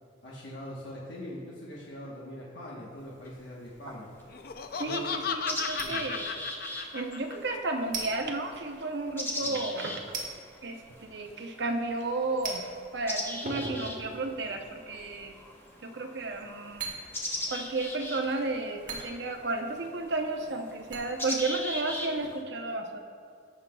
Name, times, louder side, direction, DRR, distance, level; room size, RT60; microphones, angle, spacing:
voice 1, 0.2-4.1 4.8-5.2 5.6-6.0 9.4-9.6, left 1 dB, 90° left, -5 dB, 1.2 m, -42 dB
sound 1, 3.0-22.3, right 3 dB, 45° right, 1.4 m, -45 dB
sound 2, 3.3-3.4 4.2-4.3 4.7-22.4, left 1 dB, 15° left, 0.9 m, -40 dB
Laughter, 4.3-7.6, left 6 dB, 55° left, 0.5 m, -34 dB
voice 2, 4.7-6.3 6.7-10.2 10.6-15.3 15.8-16.9 17.5-23.0, right 2 dB, 65° right, 4 dB, 0.7 m, -33 dB
15.5 x 5.5 x 2.3 m, 2.4 s
head